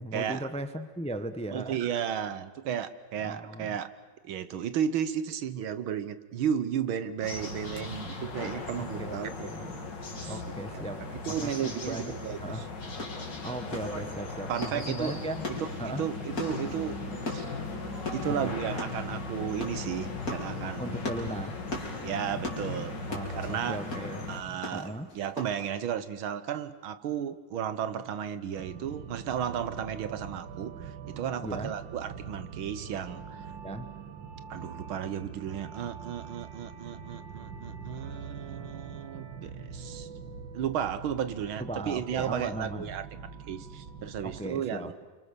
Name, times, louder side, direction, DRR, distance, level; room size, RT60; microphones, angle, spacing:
voice 1, 0.0-1.8 3.2-3.8 7.4-7.5 8.8-9.8 10.3-12.7 13.4-15.4 15.8-16.1 18.4-18.5 20.8-21.6 23.1-25.1 31.4-31.7 33.6-33.9 41.6-42.9 44.2-45.0, right 1 dB, 5° left, 10 dB, 0.7 m, -38 dB
voice 2, 1.5-3.9 4.2-9.6 10.2-10.4 10.7-10.8 11.1-12.7 14.5-15.2 15.6-15.7 16.0-17.0 17.3-17.5 18.1-21.0 22.0-23.8 24.3-33.5 34.5-40.1 40.5-43.1 43.5-44.9, right 9 dB, 85° right, 13 dB, 1.9 m, -34 dB
sound 1, 7.2-24.4, left 3 dB, 60° left, 3.2 m, -38 dB
sound 2, 12.9-25.7, left 2 dB, 45° left, 4.5 m, -40 dB
sound 3, 28.6-44.5, right 5 dB, 70° right, 2.1 m, -43 dB
28.5 x 25.0 x 6.8 m, 1.4 s
omnidirectional pair, 2.2 m